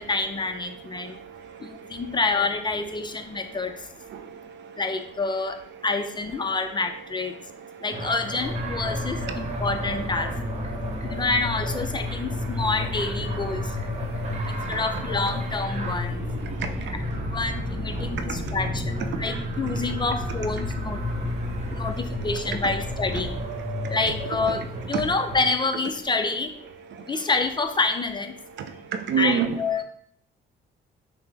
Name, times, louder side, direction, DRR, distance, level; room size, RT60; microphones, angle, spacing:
voice 1, 0.0-1.1 1.6-3.7 4.8-5.6 5.8-7.3 7.8-10.3 11.0-13.8 14.5-16.2 17.1-21.0 21.7-23.4 23.9-26.5 27.1-28.3 29.2-29.8, left 3 dB, 25° left, 7 dB, 0.4 m, -28 dB
voice 2, 0.7-2.2 3.3-4.8 5.7-5.9 7.3-8.0 9.1-9.6 10.7-11.2 12.1-12.6 13.9-14.8 15.8-17.4 17.8-18.6 19.1-20.0 21.1-22.3 22.6-22.7 23.7-24.0 24.9-25.0 26.9-27.3 28.6-29.5, right 7 dB, 65° right, 8 dB, 0.5 m, -35 dB
sound 1, 7.9-25.5, equal, 35° right, 0.7 m, -34 dB
sound 2, 8.4-23.4, left 2 dB, 5° right, 0.9 m, -33 dB
5.6 x 2.0 x 3.3 m, 0.65 s
cardioid pair, 90°, 20 cm